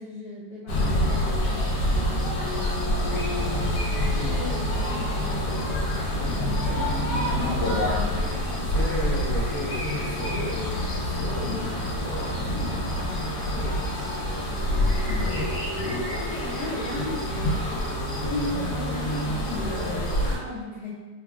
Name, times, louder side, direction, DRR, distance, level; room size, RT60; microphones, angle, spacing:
voice 1, 0.0-5.9 6.2-9.3 16.2-17.7 18.2-20.9, left 1 dB, 60° left, -9 dB, 1.3 m, -37 dB
sound 1, 0.7-20.4, left 1 dB, 80° left, 1.2 m, -26 dB
voice 2, 8.7-13.0 13.5-14.8 15.2-15.5, equal, 5° left, -12 dB, 0.8 m, -35 dB
3.3 x 2.2 x 2.4 m, 1.3 s
omnidirectional pair, 1.9 m